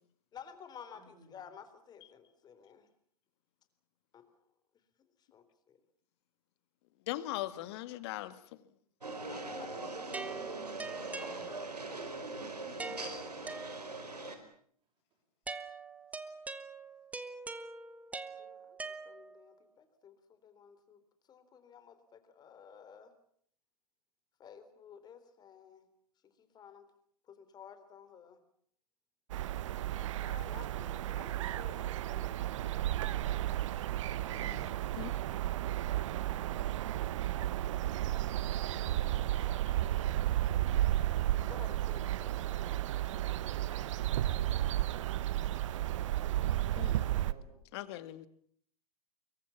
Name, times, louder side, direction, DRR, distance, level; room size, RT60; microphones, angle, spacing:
voice 1, 0.3-2.9 4.1-4.3 5.3-5.8 9.3-10.6 18.4-21.0 21.3-23.1 24.4-25.9 26.4-26.9 27.3-28.4 29.9-32.4 34.2-34.3 41.5-42.4, left 7 dB, 20° left, 3.7 m, -54 dB
voice 2, 0.9-1.3 47.1-47.6, right 3 dB, 25° right, 7.1 m, -60 dB
voice 3, 7.1-8.4 34.3-35.1 46.8-47.0 47.7-48.3, left 15 dB, 45° left, 2.0 m, -40 dB
sound 1, 9.0-14.4, right 2 dB, 85° right, 4.6 m, -41 dB
sound 2, 10.1-11.9 12.8-14.2 15.5-19.6, right 3 dB, 5° right, 1.4 m, -44 dB
sound 3, 29.3-47.3, right 13 dB, 50° right, 1.2 m, -33 dB
25.0 x 23.5 x 7.3 m
figure-of-eight pair, 110°, 20 cm